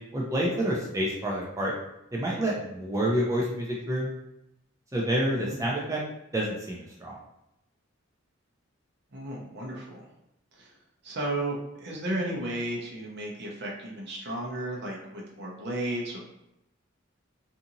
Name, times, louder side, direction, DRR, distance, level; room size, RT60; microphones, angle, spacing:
voice 1, 0.1-1.7 2.1-4.1 4.9-6.0 6.3-7.1, right 1 dB, 15° right, -3 dB, 0.4 m, -28 dB
voice 2, 9.1-10.1 10.6-10.7 11.0-16.2, right 1 dB, 55° right, -2 dB, 0.7 m, -34 dB
2.6 x 2.5 x 2.7 m, 0.84 s
head